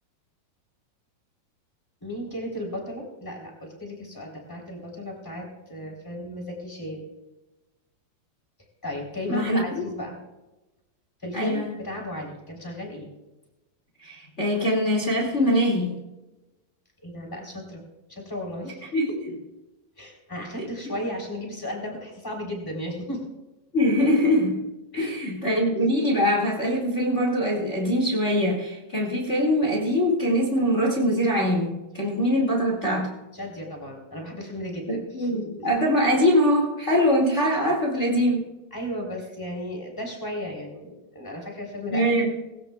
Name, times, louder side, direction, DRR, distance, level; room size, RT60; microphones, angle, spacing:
voice 1, 2.0-7.1 8.8-10.2 11.2-13.1 17.0-17.8 18.1-18.8 20.0-23.2 24.9-25.2 33.3-35.7 38.7-42.1, equal, 5° left, 0 dB, 2.8 m, -35 dB
voice 2, 9.3-9.6 11.3-11.7 14.0-15.9 18.9-19.1 23.7-24.6 24.9-33.1 34.9-38.5 41.9-42.4, equal, 30° left, -2 dB, 1.4 m, -23 dB
20.0 x 16.5 x 2.3 m, 1.1 s
omnidirectional pair, 4.8 m